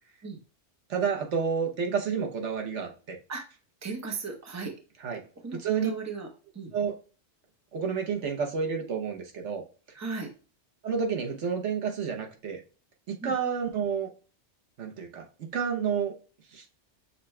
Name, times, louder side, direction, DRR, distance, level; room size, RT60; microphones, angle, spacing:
voice 1, 0.9-3.2 5.0-5.2 5.6-5.9 6.7-7.0 7.7-9.6 10.8-12.6 13.1-14.1 14.8-16.1 16.5-16.6, right 6 dB, 75° right, 3 dB, 1.2 m, -30 dB
voice 2, 3.8-4.7 5.4-6.3 6.5-6.7 9.9-10.3 13.2-13.3, right 4 dB, 15° right, 3 dB, 0.7 m, -36 dB
6.6 x 2.2 x 3.1 m, 0.36 s
omnidirectional pair, 1.2 m